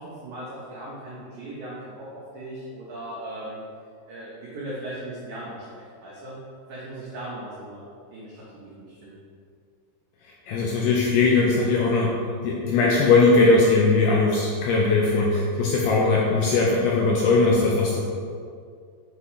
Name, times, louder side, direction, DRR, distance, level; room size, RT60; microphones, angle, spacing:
voice 1, 0.0-3.6 4.1-5.6 6.0-6.4 6.7-7.8 8.1-9.2, right 1 dB, 85° right, -7 dB, 1.7 m, -38 dB
voice 2, 10.5-12.1 12.4-18.0, left 3 dB, 80° left, -2 dB, 2.3 m, -20 dB
7.6 x 5.9 x 3.1 m, 2.2 s
omnidirectional pair, 5.1 m